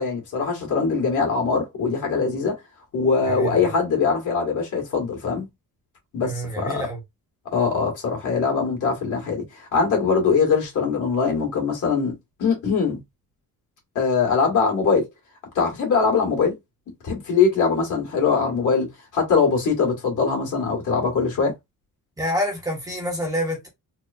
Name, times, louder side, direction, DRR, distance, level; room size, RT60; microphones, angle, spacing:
voice 1, 0.0-2.6 2.9-5.5 6.1-6.9 7.5-9.4 9.7-13.0 14.0-15.0 15.6-16.6 17.0-21.5, left 5 dB, 60° left, 2.2 m, -22 dB
voice 2, 3.2-3.7 6.2-7.0 22.2-23.7, equal, 10° right, 1.2 m, -27 dB
4.1 x 3.1 x 2.7 m
wide cardioid pair, 180°, 33 cm